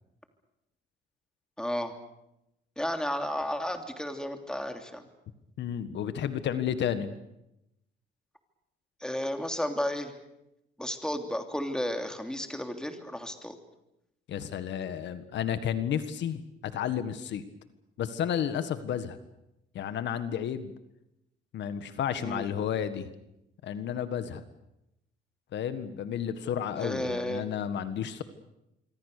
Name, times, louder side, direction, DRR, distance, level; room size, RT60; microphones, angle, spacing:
voice 1, 1.6-1.9 2.8-5.0 9.0-10.1 10.8-13.6 22.2-22.5 26.8-27.4, left 1 dB, 5° left, 5 dB, 3.0 m, -33 dB
voice 2, 5.6-7.1 14.3-17.4 18.0-19.2 19.7-20.7 21.5-23.1 23.6-24.4 25.5-28.2, left 9 dB, 65° left, 11 dB, 1.7 m, -32 dB
26.5 x 24.0 x 6.8 m, 0.86 s
cardioid pair, 115°, 20 cm